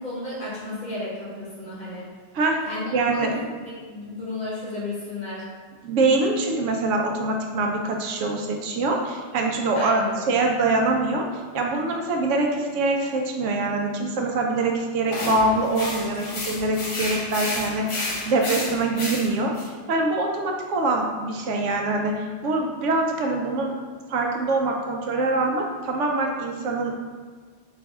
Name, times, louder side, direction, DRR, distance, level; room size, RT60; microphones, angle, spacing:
voice 1, 0.0-2.1 2.7-5.5 9.7-10.2, left 2 dB, 45° left, -8 dB, 1.5 m, -33 dB
voice 2, 2.9-3.3 5.8-10.0 10.3-11.3 11.5-19.5 19.9-23.7 24.1-26.9, right 2 dB, 85° right, 2 dB, 0.9 m, -24 dB
sound 1, 15.1-19.7, left 2 dB, 80° left, 1.2 m, -31 dB
4.1 x 2.7 x 3.4 m, 1.5 s
omnidirectional pair, 1.2 m